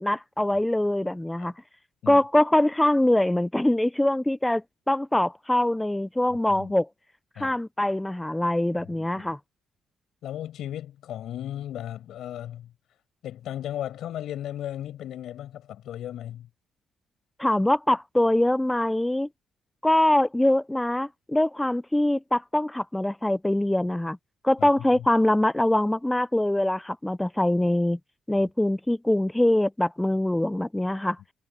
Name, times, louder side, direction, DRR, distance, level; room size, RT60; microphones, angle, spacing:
voice 1, 0.0-1.5 2.1-6.9 7.4-9.4 17.4-19.3 19.8-24.2 24.4-28.0 28.3-31.2, left 1 dB, 10° left, 0.4 m, -23 dB
voice 2, 10.2-12.7 13.2-16.5 24.6-24.7 28.4-28.5, left 11 dB, 75° left, 6.5 m, -36 dB
cardioid pair, 90°, 0 cm